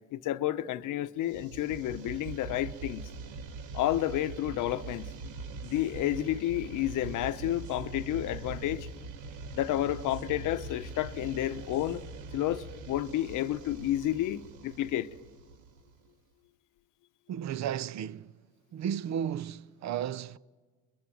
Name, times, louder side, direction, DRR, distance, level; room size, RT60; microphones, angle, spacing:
voice 1, 0.1-3.0 3.7-5.1 5.6-8.9 9.5-12.0 12.3-15.1, left 13 dB, 85° left, 0.8 m, -31 dB
sound 1, 1.3-16.1, right 3 dB, 80° right, 1.4 m, -43 dB
voice 2, 17.3-18.3 18.7-20.4, right 9 dB, 65° right, 0.7 m, -34 dB
25.0 x 21.5 x 7.6 m
cardioid pair, 90°, 30 cm